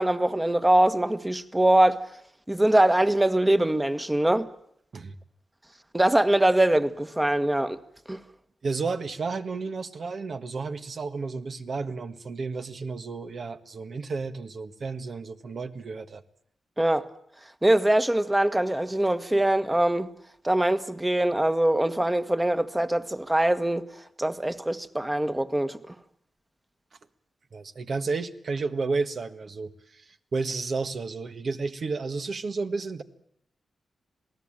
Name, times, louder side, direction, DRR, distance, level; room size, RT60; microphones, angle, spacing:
voice 1, 0.0-2.0 2.5-4.5 5.9-7.8 8.1-8.2 16.8-17.0 17.6-20.1 20.4-23.8 24.2-25.9, right 1 dB, 15° right, 1.5 m, -23 dB
voice 2, 8.6-16.2 27.5-33.0, right 4 dB, 60° right, 1.7 m, -32 dB
27.0 x 18.5 x 9.0 m
cardioid pair, 80°, 0 cm